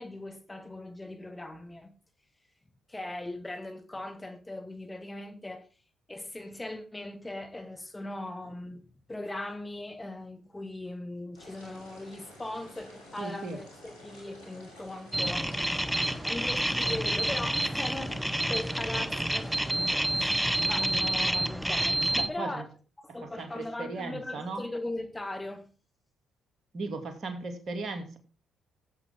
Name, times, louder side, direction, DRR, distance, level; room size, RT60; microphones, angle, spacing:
voice 1, 0.0-2.0 2.9-5.7 6.1-16.0 16.2-22.6 23.0-25.7, left 2 dB, 15° left, 1.8 m, -39 dB
sound 1, 11.3-21.0, left 1 dB, 85° left, 5.7 m, -51 dB
voice 2, 13.2-13.6 22.1-22.6 23.2-24.6 26.7-28.2, right 3 dB, 50° right, 2.5 m, -37 dB
sound 2, 15.1-22.3, right 1 dB, 5° right, 1.0 m, -28 dB
15.5 x 8.2 x 3.7 m
hypercardioid pair, 45°, 0 cm